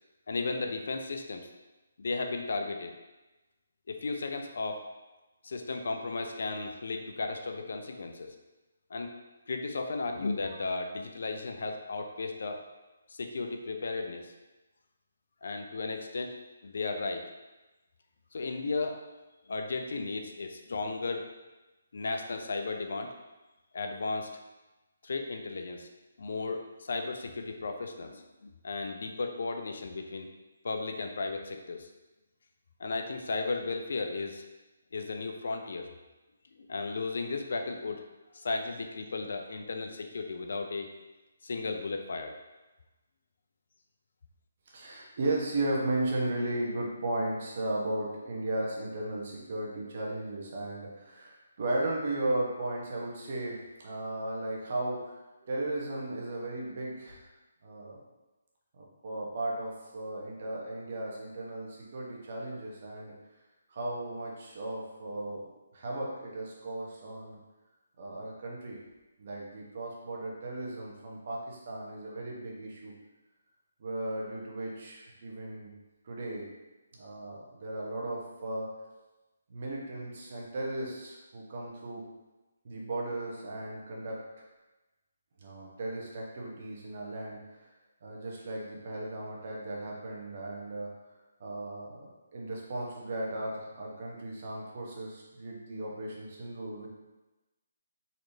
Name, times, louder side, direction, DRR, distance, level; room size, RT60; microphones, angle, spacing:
voice 1, 0.3-1.5 2.0-2.9 3.9-4.8 5.4-8.4 8.9-9.1 9.5-12.6 13.1-14.3 15.4-16.4 16.6-17.2 18.3-19.0 19.5-21.3 21.9-23.1 23.7-24.3 25.0-25.9 26.2-30.3 30.6-31.9 32.8-34.4 34.9-35.9 36.6-38.1 38.3-40.9 41.4-42.4, left 3 dB, 65° left, 4 dB, 0.4 m, -35 dB
voice 2, 44.7-53.6 53.8-57.3 57.6-58.0 58.7-63.1 63.7-67.4 68.0-68.8 69.2-72.9 73.8-75.7 76.0-76.5 76.9-78.7 79.5-82.0 82.6-84.2 85.4-87.7 88.0-90.9 91.4-92.1 92.3-96.9, right 1 dB, 50° right, -3 dB, 1.0 m, -36 dB
4.1 x 3.1 x 2.8 m, 1.1 s
figure-of-eight pair, 150°, 0 cm